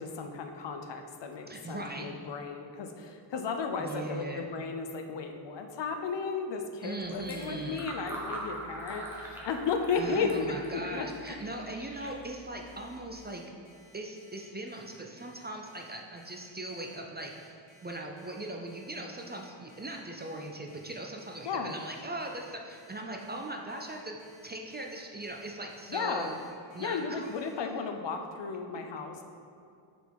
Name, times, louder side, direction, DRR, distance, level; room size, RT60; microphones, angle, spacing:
voice 1, 0.0-10.4 10.7-11.1 21.4-21.7 25.9-26.3 26.8-29.2, left 5 dB, 60° left, 5 dB, 0.7 m, -34 dB
voice 2, 1.5-2.1 3.8-4.5 6.8-7.9 9.9-13.4 13.9-24.2 24.4-26.4 26.7-27.3, right 2 dB, 20° right, 1 dB, 0.4 m, -40 dB
Fill (with liquid), 7.0-13.2, right 1 dB, 5° right, 1.1 m, -44 dB
Alarm, 12.7-27.5, left 1 dB, 85° left, 1.2 m, -60 dB
6.6 x 4.4 x 4.7 m, 2.4 s
wide cardioid pair, 120°, 47 cm